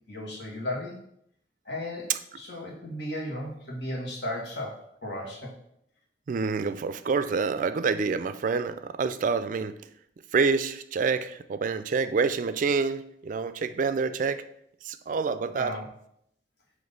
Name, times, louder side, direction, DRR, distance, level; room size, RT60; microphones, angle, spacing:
voice 1, 0.1-1.0 1.6-5.5 15.5-15.8, left 1 dB, 70° left, 1.7 m, -35 dB
voice 2, 6.3-9.8 10.3-14.4 14.8-15.8, right 5 dB, 45° right, 0.3 m, -27 dB
6.1 x 3.1 x 5.2 m
head